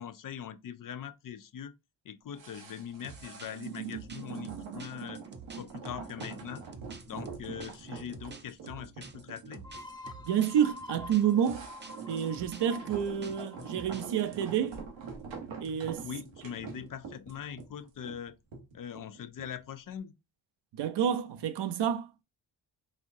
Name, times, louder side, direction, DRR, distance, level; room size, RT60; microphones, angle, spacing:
voice 1, 0.0-1.7 2.0-5.2 5.6-6.6 7.1-9.6 16.0-18.4 18.7-20.1, left 9 dB, 50° left, 0.5 m, -42 dB
sound 1, 2.4-19.6 19.9-20.0, right 6 dB, 85° right, 1.0 m, -44 dB
sound 2, 3.0-14.2, right 4 dB, 25° right, 0.7 m, -49 dB
sound 3, 9.6-15.1, left 3 dB, 10° left, 0.8 m, -48 dB
voice 2, 10.2-11.7 12.1-14.8 15.6-16.1 20.7-22.2, right 9 dB, 65° right, 0.6 m, -29 dB
4.2 x 2.3 x 2.6 m
supercardioid pair, 45°, 44 cm